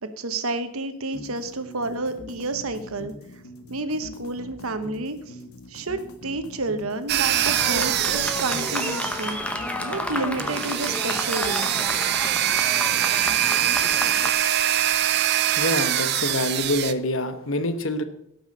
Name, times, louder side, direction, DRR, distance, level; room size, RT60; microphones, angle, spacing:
voice 1, 0.0-3.1 3.7-5.4 5.7-11.7, right 2 dB, 80° right, 9 dB, 1.0 m, -30 dB
sound 1, 1.1-14.1, left 1 dB, 85° left, 1.5 m, -43 dB
sound 2, 7.1-9.5 10.4-16.9, right 12 dB, 50° right, 0.5 m, -24 dB
Fireworks, 7.4-14.3, left 1 dB, 5° left, 1.0 m, -30 dB
voice 2, 15.6-18.0, left 1 dB, 65° left, 10 dB, 1.1 m, -26 dB
17.0 x 6.1 x 5.3 m, 0.77 s
head